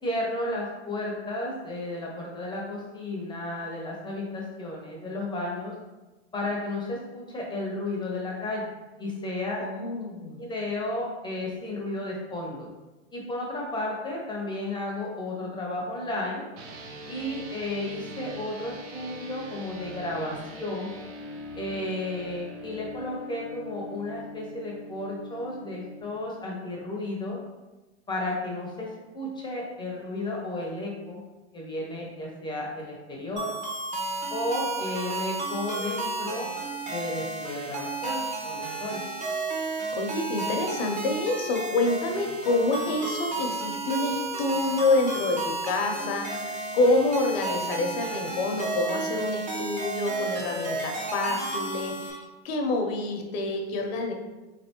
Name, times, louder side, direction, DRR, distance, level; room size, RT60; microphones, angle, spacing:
voice 1, 0.0-5.7 6.3-8.7 9.0-9.6 10.4-12.7 13.1-16.4 17.1-20.9 21.6-27.4 28.1-28.9 29.1-31.2 31.5-33.5 34.3-36.5 36.9-39.0, left 2 dB, 15° left, -2 dB, 0.7 m, -33 dB
voice 2, 9.6-10.4 39.9-54.1, left 2 dB, 55° left, 3 dB, 0.8 m, -27 dB
sound 1, 16.5-26.0, equal, 55° right, 0.8 m, -42 dB
sound 2, 33.4-52.1, right 3 dB, 20° right, 0.8 m, -32 dB
3.7 x 3.3 x 2.9 m, 1.1 s
hypercardioid pair, 125°, 36 cm